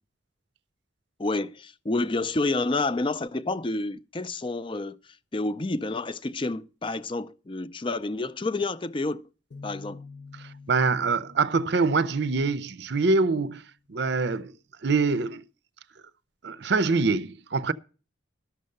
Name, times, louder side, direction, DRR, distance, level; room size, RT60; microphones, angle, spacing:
voice 1, 1.2-5.0 5.3-9.2 9.6-10.0, left 2 dB, 25° left, 0.5 m, -29 dB
sound 1, 9.5-13.2, left 4 dB, 55° left, 0.9 m, -47 dB
voice 2, 10.4-14.5 14.8-15.4 16.4-17.7, right 4 dB, 55° right, 0.5 m, -25 dB
12.5 x 6.6 x 6.6 m
head